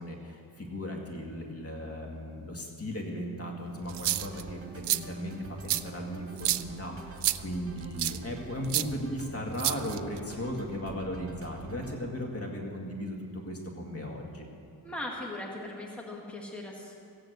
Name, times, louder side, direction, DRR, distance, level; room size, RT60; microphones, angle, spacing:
voice 1, 0.0-14.5, equal, 35° left, 0 dB, 2.1 m, -37 dB
sound 1, 3.8-12.0, right 2 dB, 35° right, 1.9 m, -45 dB
sound 2, 3.9-4.4 4.8-5.0 5.7-5.8 6.4-6.6 7.2-7.4 8.0-8.2 8.7-8.8 9.6-10.2, right 14 dB, 85° right, 0.6 m, -28 dB
voice 2, 14.8-17.0, left 1 dB, 5° left, -2 dB, 2.0 m, -39 dB
15.5 x 9.0 x 8.1 m, 2.4 s
wide cardioid pair, 130°, 40 cm